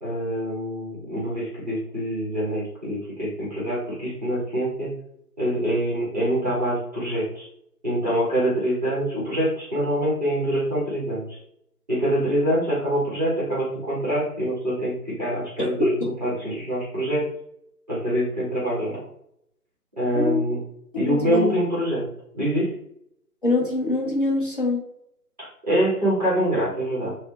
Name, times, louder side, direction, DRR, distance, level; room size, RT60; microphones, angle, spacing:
voice 1, 0.0-4.9 5.4-7.5 7.8-11.4 11.9-15.9 16.2-17.3 17.9-19.0 20.0-20.6 20.9-22.1 22.3-22.7 25.4-27.1, right 1 dB, 25° right, -8 dB, 0.9 m, -25 dB
voice 2, 15.6-16.1 20.1-20.4 20.9-21.5 23.4-24.8, left 2 dB, 35° left, -4 dB, 0.6 m, -23 dB
3.1 x 2.0 x 3.0 m, 0.74 s
figure-of-eight pair, 160°, 48 cm